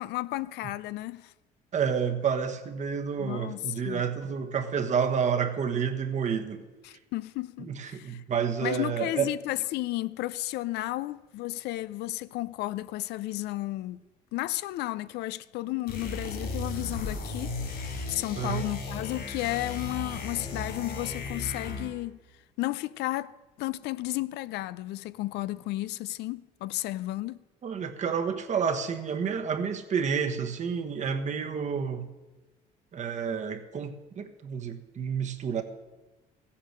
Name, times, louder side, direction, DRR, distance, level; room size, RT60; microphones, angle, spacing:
voice 1, 0.0-1.3 3.2-4.0 6.8-8.2 8.6-14.0 14.3-22.2 22.6-27.4, left 17 dB, 80° left, 0.5 m, -33 dB
voice 2, 1.7-6.6 7.7-9.3 18.4-18.7 27.6-32.1 32.9-35.6, right 7 dB, 45° right, 1.3 m, -29 dB
sound 1, 15.9-22.0, left 3 dB, 65° left, 3.8 m, -35 dB
15.0 x 8.6 x 6.5 m
cardioid pair, 110°, 17 cm